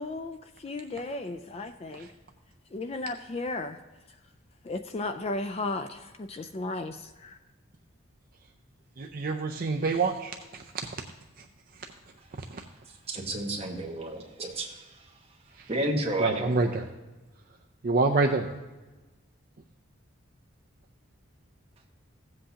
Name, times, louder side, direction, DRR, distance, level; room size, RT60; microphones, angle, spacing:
voice 1, 0.0-2.1 2.7-3.8 4.6-7.4, left 2 dB, 30° left, 8 dB, 0.3 m, -35 dB
voice 2, 9.0-10.6 12.5-12.6 16.2-16.8 17.8-18.5, right 3 dB, 45° right, 4 dB, 0.4 m, -26 dB
voice 3, 12.9-15.1 15.7-16.6, right 1 dB, 30° right, -1 dB, 1.4 m, -32 dB
15.5 x 7.7 x 2.8 m, 1.2 s
head